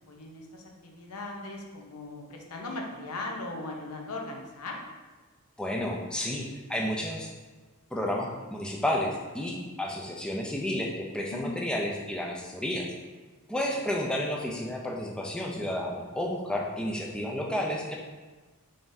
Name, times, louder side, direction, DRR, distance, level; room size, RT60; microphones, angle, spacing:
voice 1, 0.1-4.8 11.3-11.6, left 2 dB, 85° left, 1 dB, 0.7 m, -38 dB
voice 2, 5.6-7.3 7.9-12.9 13.5-18.0, left 1 dB, 5° left, -1 dB, 0.4 m, -31 dB
3.8 x 3.4 x 2.6 m, 1.3 s
head